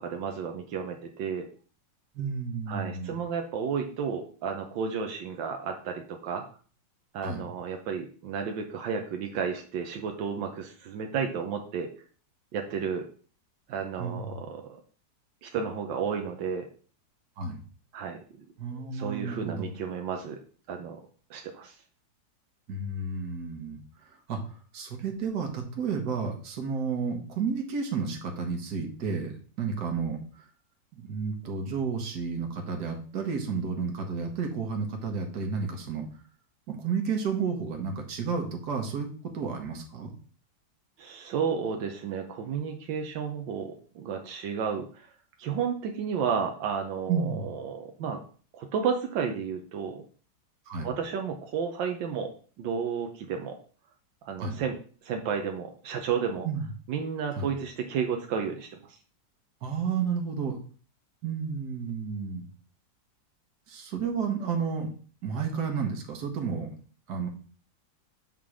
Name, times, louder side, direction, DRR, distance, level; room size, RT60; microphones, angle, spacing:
voice 1, 0.0-1.5 2.7-6.4 7.1-11.9 12.5-13.1 13.7-14.8 15.4-16.7 17.9-18.2 18.7-20.4 20.7-21.0 21.3-21.7 41.0-45.1 45.4-48.2 48.5-50.0 50.8-53.6 54.3-54.8 55.0-56.5 56.9-59.0, right 6 dB, 85° right, 4 dB, 1.5 m, -32 dB
voice 2, 2.2-3.1 7.2-7.5 14.0-14.2 17.4-17.6 18.6-19.7 22.7-24.4 24.7-30.5 30.9-36.1 36.7-39.1 39.3-40.1 47.1-47.5 50.7-50.9 54.4-54.6 56.4-56.6 57.3-57.5 59.6-60.6 61.2-62.5 63.7-64.9 65.2-66.7 67.1-67.3, right 5 dB, 60° right, 3 dB, 1.7 m, -31 dB
7.6 x 3.8 x 4.8 m, 0.41 s
omnidirectional pair, 2.0 m